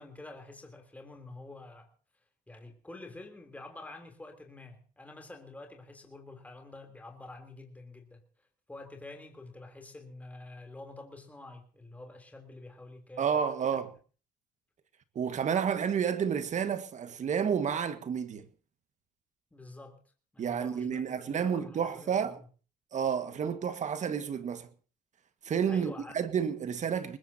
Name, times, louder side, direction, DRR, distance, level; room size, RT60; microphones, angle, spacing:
voice 1, 0.0-1.9 2.5-8.2 8.7-13.3 13.6-13.8 19.5-20.0 20.3-22.3 25.6-26.1, left 2 dB, 10° left, 3.4 m, -48 dB
voice 2, 13.2-13.9 15.1-18.5 20.4-22.4 22.9-24.7 25.4-27.2, right 7 dB, 45° right, 1.7 m, -30 dB
21.0 x 20.5 x 2.8 m
cardioid pair, 110°, 17 cm